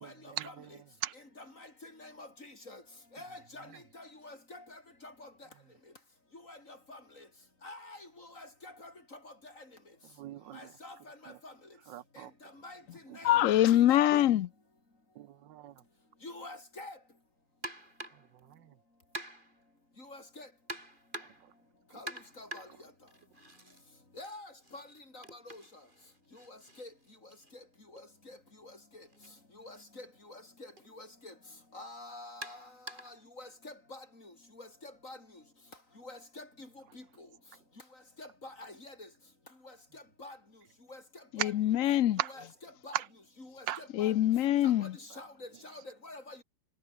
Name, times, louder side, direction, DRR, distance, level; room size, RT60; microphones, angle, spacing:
voice 1, 1.8-2.8 3.1-3.7 3.9-4.6 5.0-5.3 6.5-6.6 6.9-7.0 7.6-8.0 8.4-9.3 10.5-11.5 12.6-12.8 13.1-13.8 16.2-17.0 20.1-20.5 21.9-22.1 22.4-22.7 24.2-24.8 25.1-25.6 26.5-26.9 28.3-28.4 29.6-30.4 30.9-31.3 31.7-32.6 33.0-34.0 34.6-35.2 36.0-36.5 36.9-37.0 38.2-38.9 39.9-40.4 40.9-41.0 42.3-43.0 43.4-44.1 44.6-44.9 45.2-46.4, left 2 dB, 40° left, 6.1 m, -47 dB
voice 2, 10.2-10.6 11.9-12.3 15.2-15.7 42.2-42.3 42.9-43.0 43.7-43.8, right 12 dB, 75° right, 1.3 m, -36 dB
voice 3, 13.2-14.5 41.3-42.2 43.9-45.0, left 12 dB, 75° left, 0.7 m, -24 dB
sound 1, 17.6-18.3 19.1-19.6 20.7-21.5 22.1-23.8 24.1-28.0 29.1-29.3 29.7-29.8 30.8-30.9 32.4-33.2, right 1 dB, 25° right, 7.4 m, -46 dB
omnidirectional pair, 2.1 m